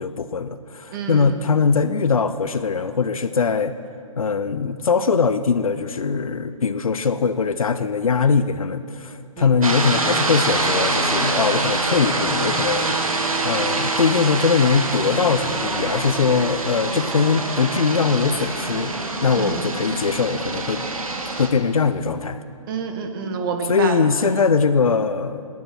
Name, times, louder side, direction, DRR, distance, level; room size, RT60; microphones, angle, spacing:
voice 1, 0.0-3.7 4.2-13.0 13.4-19.0 19.2-20.8 21.2-22.4 23.7-25.5, left 5 dB, 85° left, 11 dB, 0.7 m, -21 dB
voice 2, 0.9-1.4 9.4-9.7 19.3-19.7 22.7-24.5, right 5 dB, 40° right, 5 dB, 1.7 m, -29 dB
sound 1, 9.6-21.5, right 3 dB, 90° right, 1.9 m, -25 dB
24.0 x 9.5 x 6.1 m, 2.6 s
hypercardioid pair, 140°, 17 cm